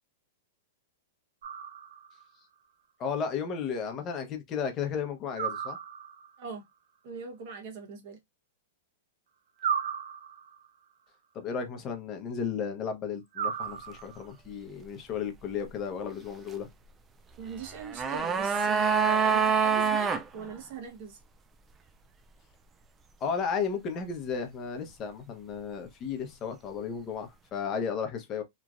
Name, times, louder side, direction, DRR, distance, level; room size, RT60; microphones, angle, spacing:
sound 1, 1.4-2.3 5.4-6.4 9.6-10.7 13.3-14.3, right 7 dB, 75° right, 0.5 m, -35 dB
voice 1, 3.0-5.8 11.3-16.7 23.2-28.4, left 6 dB, 25° left, 0.8 m, -34 dB
voice 2, 7.0-8.2 17.4-21.2, right 6 dB, 50° right, 1.1 m, -40 dB
sound 2, 17.6-20.2 20.5-20.6, right 6 dB, 15° right, 0.3 m, -25 dB
3.0 x 2.4 x 2.4 m
hypercardioid pair, 145°, 0 cm